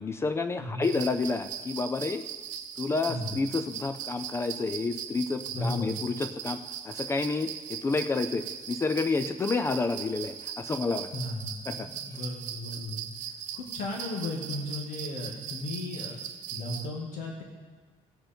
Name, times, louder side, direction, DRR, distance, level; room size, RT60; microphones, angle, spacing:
voice 1, 0.0-2.2 2.8-6.6 6.8-11.1 11.7-12.2, left 3 dB, 20° left, 10 dB, 0.4 m, -30 dB
sound 1, 0.8-16.9, right 9 dB, 60° right, 0.8 m, -39 dB
voice 2, 5.5-6.1 11.1-13.1 13.5-16.2 16.5-17.4, left 2 dB, 60° left, -1 dB, 2.0 m, -35 dB
17.5 x 7.8 x 4.4 m, 1.3 s
cardioid pair, 165°, 14 cm